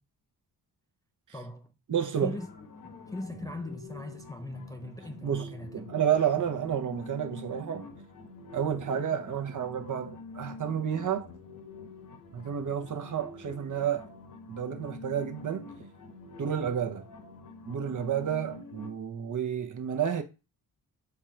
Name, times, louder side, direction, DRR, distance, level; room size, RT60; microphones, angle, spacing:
voice 1, 1.3-1.7 2.2-2.5 2.8-5.8, left 2 dB, 10° left, 0.4 m, -40 dB
voice 2, 1.9-2.4 5.2-7.9 8.5-11.3 12.3-14.1 14.5-15.7 16.4-17.0 17.7-20.2, right 8 dB, 50° right, 0.8 m, -30 dB
sound 1, 2.1-18.9, left 3 dB, 55° left, 1.1 m, -47 dB
4.5 x 2.5 x 4.4 m
cardioid pair, 80°, 39 cm